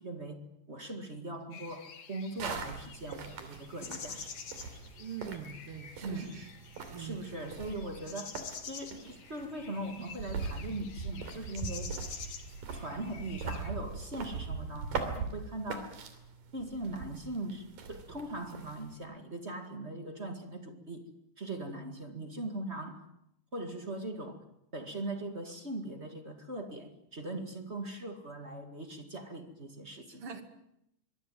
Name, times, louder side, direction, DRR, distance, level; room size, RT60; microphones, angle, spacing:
voice 1, 0.0-4.3 6.0-6.4 7.0-8.4 8.6-12.0 12.7-16.0 16.5-23.1 23.5-24.4 24.7-30.2, right 1 dB, 25° right, 1.8 m, -40 dB
sound 1, 1.5-13.7, left 6 dB, 50° left, 3.1 m, -48 dB
sound 2, 2.4-18.9, right 5 dB, 75° right, 4.5 m, -42 dB
voice 2, 5.0-6.5 6.9-7.2 21.6-21.7 30.2-30.4, right 7 dB, 45° right, 2.9 m, -43 dB
25.0 x 21.5 x 9.1 m
omnidirectional pair, 3.9 m